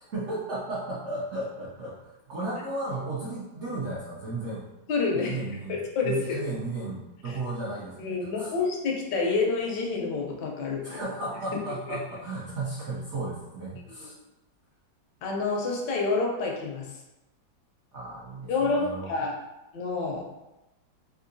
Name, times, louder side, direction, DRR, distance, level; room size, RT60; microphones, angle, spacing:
voice 1, 0.1-4.6 5.2-5.7 6.0-8.5 10.8-14.1 17.9-19.1, right 2 dB, 65° right, -7 dB, 0.7 m, -34 dB
voice 2, 4.9-5.4 5.7-6.4 7.2-7.4 8.0-10.8 11.9-12.0 13.9-14.1 15.2-16.9 18.5-19.4 19.7-20.2, left 4 dB, 75° left, 0 dB, 1.3 m, -28 dB
3.6 x 2.6 x 2.6 m, 0.96 s
omnidirectional pair, 2.0 m